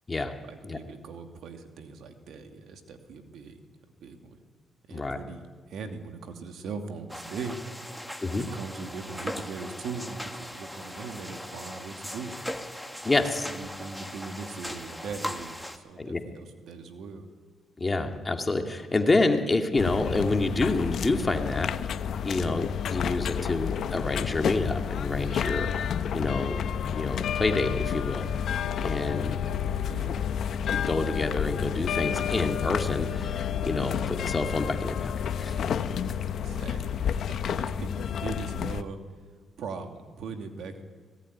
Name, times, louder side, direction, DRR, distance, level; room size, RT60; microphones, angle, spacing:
voice 1, 0.4-3.6 4.0-4.4 4.9-7.8 8.3-12.4 13.4-17.3 29.7-30.2 36.4-39.0 39.6-40.8, right 4 dB, 70° right, 5 dB, 2.6 m, -40 dB
sound 1, 7.1-15.8, equal, ahead, 2.0 m, -39 dB
voice 2, 13.0-13.5 16.0-16.2 17.8-21.7 22.2-25.7 26.1-28.2 28.8-29.3 30.7-35.1 35.4-35.8, left 2 dB, 20° left, 4 dB, 2.4 m, -28 dB
sound 2, 19.8-38.8, left 8 dB, 65° left, 1.0 m, -30 dB
24.5 x 18.5 x 9.8 m, 1.5 s
cardioid pair, 90°, 0 cm